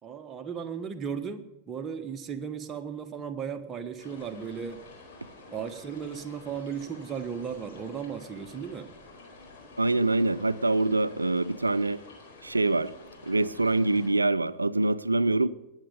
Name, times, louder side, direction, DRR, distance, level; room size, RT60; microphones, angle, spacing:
voice 1, 0.0-4.8 5.5-8.9, right 7 dB, 25° right, 1.3 m, -36 dB
sound 1, 4.0-14.1, left 2 dB, 55° left, 4.6 m, -49 dB
voice 2, 9.8-12.0 12.4-12.9 13.2-15.5, right 2 dB, 80° right, 0.5 m, -25 dB
21.0 x 8.9 x 5.2 m
figure-of-eight pair, 90°, 0 cm